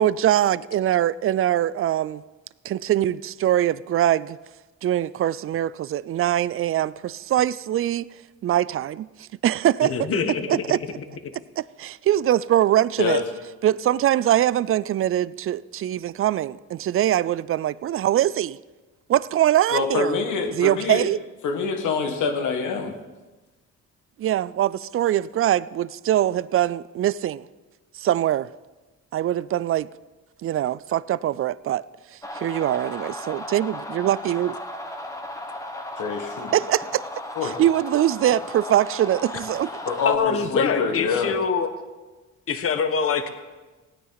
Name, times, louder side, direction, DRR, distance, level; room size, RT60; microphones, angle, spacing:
voice 1, 0.0-2.2 2.6-4.4 4.8-8.1 8.4-10.1 10.5-10.8 11.6-13.2 13.6-18.6 19.1-20.2 20.5-21.2 24.2-27.5 27.9-28.5 29.1-29.9 30.4-31.8 32.3-34.6 36.5-37.1 37.4-39.7, right 12 dB, 45° right, 20 dB, 0.4 m, -22 dB
voice 2, 9.8-10.6 39.3-39.4 40.0-41.7 42.5-43.3, left 6 dB, 50° left, 9 dB, 1.2 m, -24 dB
voice 3, 19.7-21.0 21.4-23.0 36.0-36.5 37.3-37.5 39.8-41.3, left 5 dB, 80° left, 3 dB, 1.7 m, -25 dB
sound 1, 32.2-40.2, left 1 dB, 10° left, 1.4 m, -35 dB
16.5 x 9.5 x 4.0 m, 1.2 s
cardioid pair, 90°, 30 cm